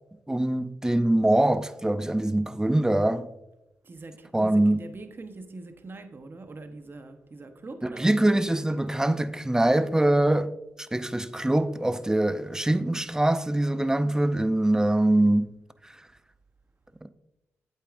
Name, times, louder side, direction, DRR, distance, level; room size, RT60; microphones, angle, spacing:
voice 1, 0.3-3.3 4.3-4.8 7.8-15.5 15.8-15.9, right 1 dB, 10° right, 0.5 m, -23 dB
voice 2, 3.8-8.4, right 3 dB, 40° right, 1.0 m, -43 dB
8.3 x 8.3 x 2.5 m
supercardioid pair, 55°, 6 cm